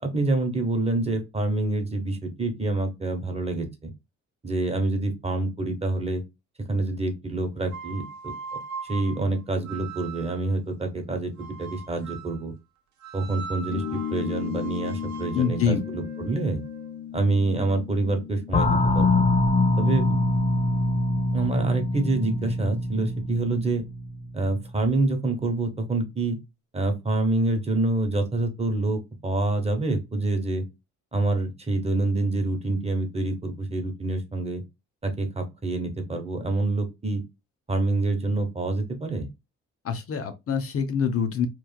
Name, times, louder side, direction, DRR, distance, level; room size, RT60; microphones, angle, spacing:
voice 1, 0.0-3.9 4.4-6.2 6.7-8.6 8.9-12.5 13.1-16.6 17.1-19.3 19.8-20.2 21.3-23.8 24.3-26.4 26.7-30.6 31.1-34.6 35.0-37.2 37.7-39.3, right 2 dB, 20° right, 1.0 m, -27 dB
sound 1, 7.7-10.5 11.4-12.4 13.0-17.0, right 5 dB, 70° right, 0.7 m, -40 dB
sound 2, 13.7-20.7, left 9 dB, 80° left, 0.6 m, -36 dB
voice 2, 15.3-15.8 39.8-41.5, left 6 dB, 50° left, 0.7 m, -25 dB
sound 3, 18.5-24.9, left 2 dB, 25° left, 0.4 m, -24 dB
3.1 x 2.3 x 2.2 m
cardioid pair, 90°, 30 cm